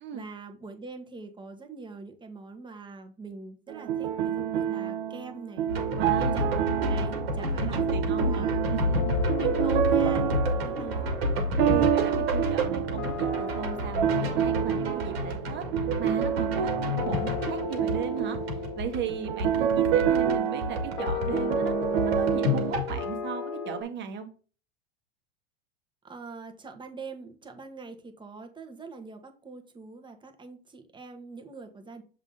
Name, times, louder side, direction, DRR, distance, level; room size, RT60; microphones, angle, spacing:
voice 1, 0.1-5.7 6.2-6.5 6.9-8.6 9.4-10.3 10.6-11.1 26.0-32.0, right 4 dB, 15° right, 5 dB, 1.4 m, -43 dB
sound 1, 3.7-22.7, right 9 dB, 65° right, 1.0 m, -28 dB
sound 2, 5.7-20.4 20.6-23.1, left 1 dB, 80° right, 1.8 m, -30 dB
voice 2, 5.9-6.5 7.4-9.6 10.5-10.9 11.7-15.6 16.0-18.4 18.8-21.7 22.0-24.3, right 7 dB, 35° right, 6 dB, 1.5 m, -37 dB
sound 3, 6.8-8.2 9.0-23.8, left 10 dB, 60° left, 1.7 m, -38 dB
7.3 x 3.7 x 3.9 m, 0.37 s
hypercardioid pair, 90°, 30 cm